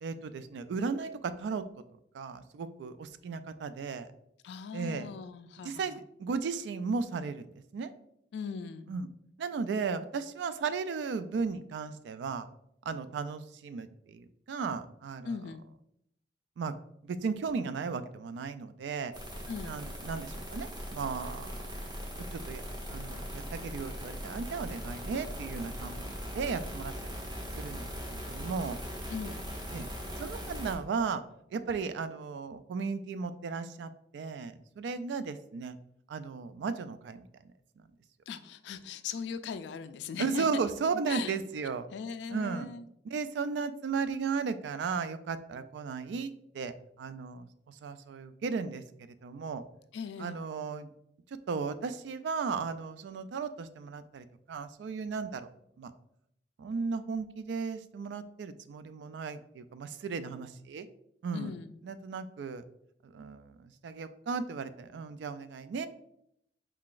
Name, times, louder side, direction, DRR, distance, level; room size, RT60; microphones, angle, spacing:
voice 1, 0.0-1.6 2.1-4.1 4.7-5.1 5.6-7.9 8.9-9.1 9.4-12.5 12.9-15.4 16.6-16.7 17.0-19.1 19.6-21.7 22.2-22.6 22.9-26.9 27.6-28.8 29.7-29.9 30.2-31.2 31.5-35.8 36.1-37.3 40.2-41.9 42.3-42.7 43.0-49.6 50.2-50.9 51.5-55.5 55.8-55.9 56.6-60.9 61.2-61.5 61.8-62.6 63.0-65.9, right 5 dB, 85° right, 13 dB, 0.3 m, -35 dB
voice 2, 4.4-6.0 8.3-8.9 15.2-15.7 19.5-19.8 29.1-29.5 38.3-40.6 41.1-41.4 41.9-42.8 49.9-50.4 61.3-61.8, left 6 dB, 75° left, 11 dB, 0.3 m, -39 dB
sound 1, 19.1-30.7, equal, 25° right, 1.0 m, -40 dB
4.6 x 3.8 x 2.4 m, 0.75 s
head